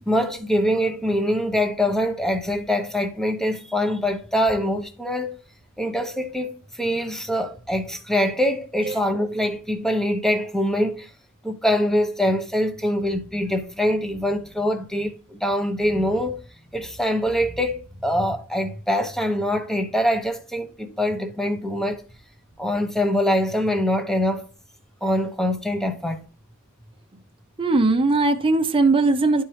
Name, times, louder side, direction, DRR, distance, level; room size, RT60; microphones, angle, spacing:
voice 1, 0.1-5.3 5.8-11.1 11.4-16.4 16.7-22.0 22.6-24.5 25.0-26.2, equal, ahead, 0.9 m, -24 dB
voice 2, 27.6-29.4, right 3 dB, 25° right, 0.7 m, -19 dB
11.5 x 4.5 x 3.2 m
head